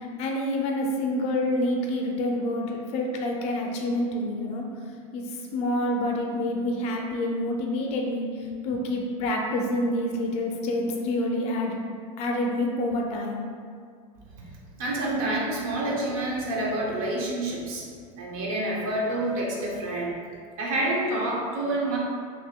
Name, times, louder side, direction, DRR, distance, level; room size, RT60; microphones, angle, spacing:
voice 1, 0.2-4.6 5.1-8.3 8.6-11.8 12.2-13.4, left 1 dB, 35° left, 0 dB, 0.4 m, -27 dB
voice 2, 14.8-17.9 18.2-20.2 20.6-22.0, right 1 dB, 75° right, -3 dB, 0.9 m, -28 dB
2.9 x 2.8 x 3.6 m, 2.1 s
supercardioid pair, 150°, 18 cm